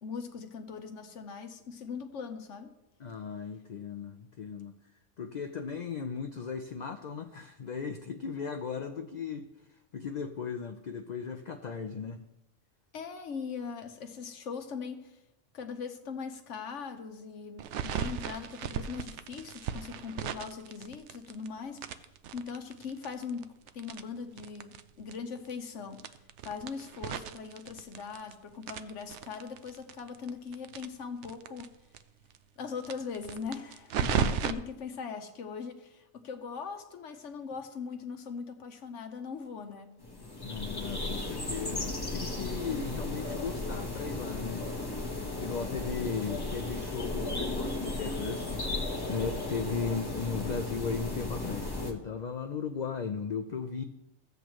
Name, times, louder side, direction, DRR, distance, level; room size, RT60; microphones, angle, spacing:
voice 1, 0.0-2.7 12.9-15.2 15.5-31.7 32.6-39.9, left 5 dB, 70° left, 6 dB, 1.2 m, -40 dB
voice 2, 3.0-4.7 5.2-9.5 9.9-12.2 34.0-34.3 40.4-44.7 45.4-48.5 49.1-53.8, left 5 dB, 55° left, 6 dB, 0.5 m, -36 dB
sound 1, 17.6-21.5 21.8-24.8 25.1-25.2 25.4-25.5 25.9-28.3 28.6-31.7 31.9-32.0 32.3-32.4 32.8-34.5, right 8 dB, 70° right, 0.9 m, -35 dB
sound 2, 40.0-51.9, left 2 dB, 20° left, 1.1 m, -35 dB
15.0 x 8.1 x 3.1 m, 0.92 s
omnidirectional pair, 1.3 m